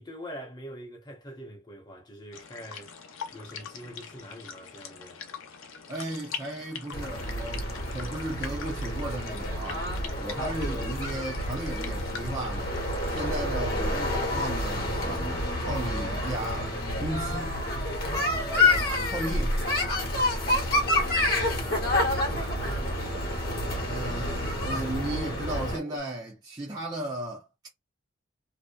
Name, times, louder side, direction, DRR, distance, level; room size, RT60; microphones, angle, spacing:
voice 1, 0.0-2.9 3.3-5.2 10.0-10.5 18.4-18.9 20.8-21.0 22.2-23.0, equal, 20° left, 0.8 m, -44 dB
sound 1, 2.3-13.3, left 6 dB, 85° left, 0.6 m, -43 dB
voice 2, 5.9-9.9 10.2-12.7 13.1-16.7 17.0-17.6 19.1-19.5 23.9-27.5, right 1 dB, 20° right, 0.6 m, -35 dB
sound 2, 6.9-25.8, left 1 dB, 50° left, 1.0 m, -28 dB
sound 3, 20.6-26.0, right 2 dB, 55° right, 1.1 m, -45 dB
2.7 x 2.1 x 2.2 m
head